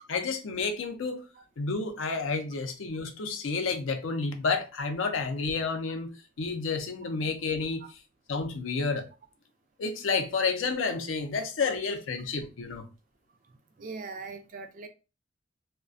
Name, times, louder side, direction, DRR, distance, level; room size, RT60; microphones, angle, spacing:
voice 1, 0.1-1.2 1.6-6.1 6.4-7.8 8.3-9.0 9.8-12.9, left 4 dB, 80° left, 0.5 m, -30 dB
voice 2, 13.8-14.9, right 4 dB, 40° right, 0.4 m, -40 dB
2.3 x 2.1 x 2.5 m
head